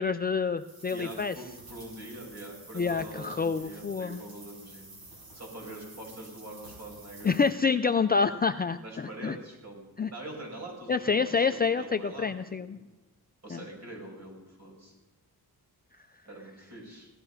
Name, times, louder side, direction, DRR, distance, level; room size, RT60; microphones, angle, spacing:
voice 1, 0.0-1.3 2.7-4.2 7.2-9.4 10.0-10.1 10.9-12.8 13.5-13.6, left 5 dB, 25° left, 8 dB, 0.4 m, -27 dB
sound 1, 0.6-7.5, right 2 dB, 70° right, 6.2 m, -50 dB
voice 2, 0.9-4.9 5.3-7.4 8.1-8.3 8.8-9.8 10.1-12.8 13.4-14.9 16.2-17.1, right 1 dB, 45° right, -1 dB, 6.4 m, -44 dB
17.0 x 13.0 x 5.7 m, 1.1 s
wide cardioid pair, 145°, 38 cm